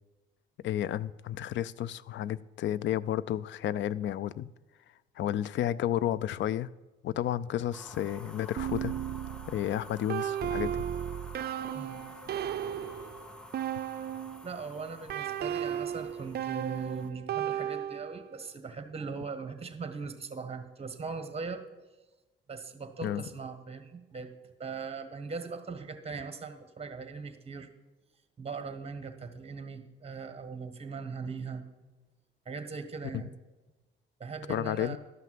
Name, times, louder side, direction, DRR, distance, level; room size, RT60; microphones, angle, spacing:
voice 1, 0.6-4.5 5.2-6.7 7.0-8.9 9.5-10.7 23.0-23.2 34.5-35.0, left 11 dB, 70° left, 0.4 m, -31 dB
sound 1, 7.7-17.1, left 1 dB, 5° left, 0.7 m, -50 dB
sound 2, 8.6-14.5 15.1-18.3, right 10 dB, 55° right, 0.5 m, -35 dB
voice 2, 14.4-21.6 22.5-24.3 24.6-27.7 28.4-31.6 32.4-33.3 34.2-35.0, right 4 dB, 30° right, 1.5 m, -40 dB
12.5 x 5.8 x 7.6 m
cardioid pair, 90°, 20 cm